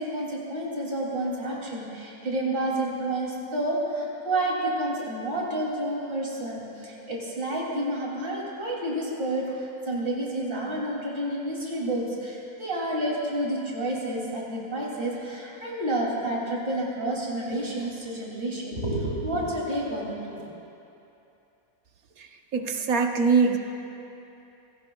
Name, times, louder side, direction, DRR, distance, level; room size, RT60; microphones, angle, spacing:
voice 1, 0.0-20.5, right 1 dB, 40° right, -4 dB, 3.0 m, -30 dB
voice 2, 22.2-23.6, right 5 dB, 80° right, 4 dB, 1.5 m, -23 dB
27.0 x 17.5 x 2.3 m, 2.8 s
omnidirectional pair, 1.5 m